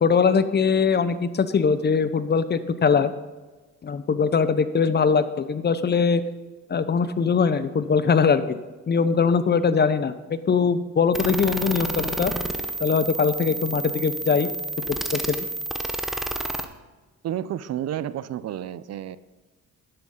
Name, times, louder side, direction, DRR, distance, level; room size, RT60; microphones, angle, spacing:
voice 1, 0.0-3.1 3.8-6.2 6.7-8.6 8.9-12.3 12.8-14.5 14.8-15.5, left 5 dB, 35° left, 13 dB, 0.7 m, -21 dB
sound 1, 11.1-16.6, right 2 dB, ahead, 0.8 m, -30 dB
voice 2, 17.2-19.2, right 11 dB, 60° right, 16 dB, 0.5 m, -30 dB
11.0 x 10.5 x 3.8 m, 1.2 s
cardioid pair, 90°, 30 cm